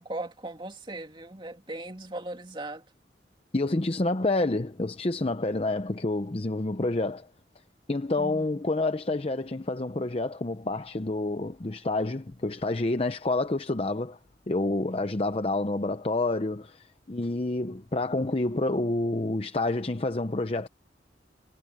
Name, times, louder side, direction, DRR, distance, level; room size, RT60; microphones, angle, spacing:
voice 1, 0.0-2.8 8.2-8.6, right 2 dB, 25° right, 2.6 m, -38 dB
voice 2, 3.5-7.3 7.9-14.2 14.5-20.7, left 2 dB, 30° left, 0.7 m, -28 dB
head